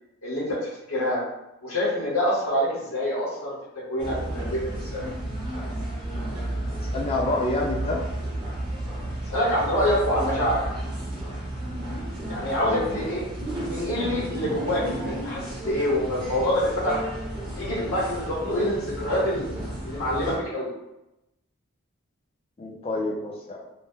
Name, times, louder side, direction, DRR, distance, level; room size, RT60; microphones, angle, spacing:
voice 1, 0.2-0.6 0.9-1.2 1.6-3.5 3.9-5.0 9.3-10.6 12.3-13.2 13.7-17.0 17.5-19.5 19.8-20.7, equal, 80° left, -8 dB, 0.9 m, -26 dB
sound 1, 4.0-20.4, right 1 dB, 20° right, 0.7 m, -33 dB
voice 2, 6.8-8.0 12.6-13.0 22.6-23.6, left 2 dB, 25° left, 0 dB, 0.3 m, -28 dB
2.7 x 2.0 x 3.6 m, 0.92 s
head